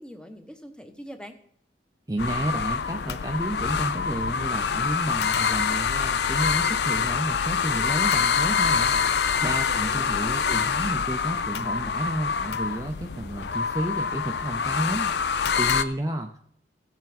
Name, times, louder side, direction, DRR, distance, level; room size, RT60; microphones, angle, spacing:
voice 1, 0.0-1.4 9.7-10.7, equal, 5° left, 6 dB, 0.8 m, -43 dB
voice 2, 2.1-16.4, right 1 dB, 20° right, 4 dB, 0.5 m, -31 dB
sound 1, 2.2-15.8, left 6 dB, 70° left, 0.5 m, -25 dB
16.0 x 6.5 x 4.1 m, 0.66 s
head